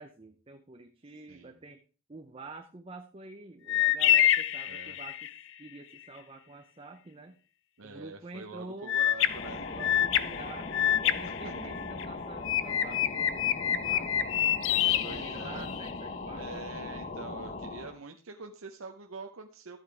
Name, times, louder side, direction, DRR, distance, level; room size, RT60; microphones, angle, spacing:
voice 1, 0.0-1.8 2.1-5.3 5.6-7.4 7.8-9.0 9.6-14.1 14.7-16.7, right 2 dB, 25° right, 6 dB, 0.6 m, -47 dB
sound 1, 3.7-5.4 8.9-12.1 12.5-15.9, left 11 dB, 65° left, 0.6 m, -27 dB
voice 2, 4.7-5.0 7.8-9.7 11.2-11.5 15.0-15.7 16.3-19.8, right 4 dB, 70° right, 4 dB, 0.8 m, -45 dB
sound 2, 9.2-18.0, left 3 dB, 40° left, 0.8 m, -39 dB
12.5 x 8.4 x 3.4 m, 0.36 s
head